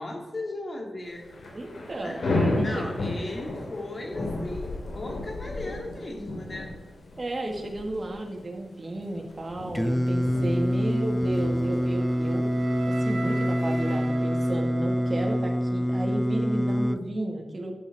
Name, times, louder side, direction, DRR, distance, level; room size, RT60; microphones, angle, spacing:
voice 1, 0.0-1.4 2.0-6.8, left 2 dB, 40° left, 1 dB, 2.6 m, -37 dB
Thunder / Rain, 1.1-13.8, left 2 dB, 85° left, 3.0 m, -34 dB
voice 2, 1.5-2.9 7.2-12.5 12.9-17.8, right 1 dB, 35° right, 1 dB, 2.1 m, -33 dB
Singing, 9.7-17.0, equal, 5° left, 0.6 m, -26 dB
Wind instrument woodwind instrument, 11.8-15.9, right 3 dB, 80° right, 3.0 m, -39 dB
12.5 x 7.5 x 4.2 m, 1.1 s
wide cardioid pair, 90°, 0 cm